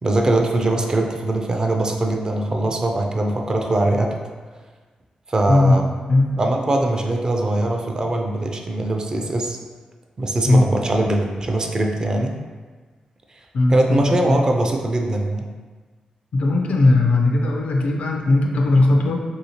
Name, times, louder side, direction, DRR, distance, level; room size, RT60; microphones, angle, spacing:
voice 1, 0.0-4.1 5.3-5.9 6.4-9.6 10.2-12.3 13.7-15.5, right 2 dB, 35° right, 2 dB, 0.4 m, -21 dB
voice 2, 5.5-5.8 6.1-6.4 10.4-10.7 13.5-14.4 16.3-19.2, left 2 dB, 70° left, 1 dB, 0.4 m, -18 dB
3.1 x 2.8 x 2.8 m, 1.4 s
wide cardioid pair, 105°, 2 cm